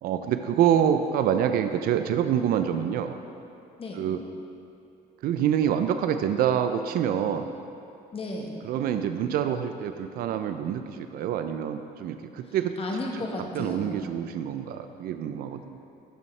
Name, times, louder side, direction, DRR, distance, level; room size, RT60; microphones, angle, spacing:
voice 1, 0.0-3.2 3.9-4.2 5.2-7.5 8.6-12.8 13.2-13.3 13.5-15.8, right 9 dB, 65° right, 8 dB, 0.4 m, -26 dB
voice 2, 8.1-8.5 12.4-14.1, left 2 dB, 35° left, 0 dB, 1.2 m, -34 dB
13.5 x 5.4 x 3.2 m, 2.6 s
cardioid pair, 110°, 17 cm